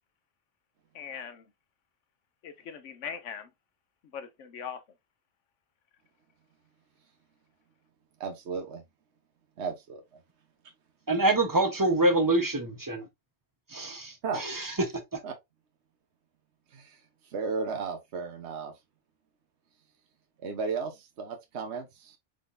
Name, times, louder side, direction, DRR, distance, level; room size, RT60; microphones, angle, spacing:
voice 1, 0.9-1.4 2.4-3.5 4.1-4.8, left 7 dB, 80° left, 1.1 m, -40 dB
voice 2, 8.2-8.8 9.6-10.0 14.2-14.4 15.2-15.3 16.7-17.0 17.3-18.7 20.4-22.2, right 5 dB, 65° right, 1.2 m, -34 dB
voice 3, 11.1-13.1 13.7-14.7 15.1-15.2, right 2 dB, 20° right, 0.8 m, -26 dB
4.9 x 3.7 x 2.5 m
omnidirectional pair, 1.3 m